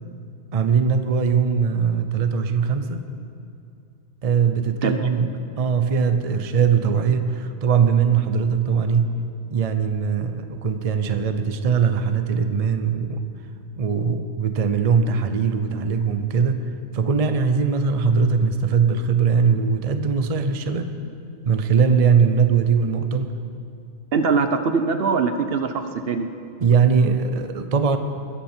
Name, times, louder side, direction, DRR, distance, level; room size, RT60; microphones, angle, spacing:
voice 1, 0.5-3.1 4.2-9.1 9.5-13.2 13.8-16.6 16.9-21.0 21.4-23.3 26.6-28.0, right 6 dB, 35° right, 8 dB, 0.7 m, -21 dB
voice 2, 24.1-26.3, right 5 dB, 60° right, 8 dB, 0.9 m, -22 dB
20.5 x 12.5 x 4.4 m, 2.5 s
omnidirectional pair, 1.2 m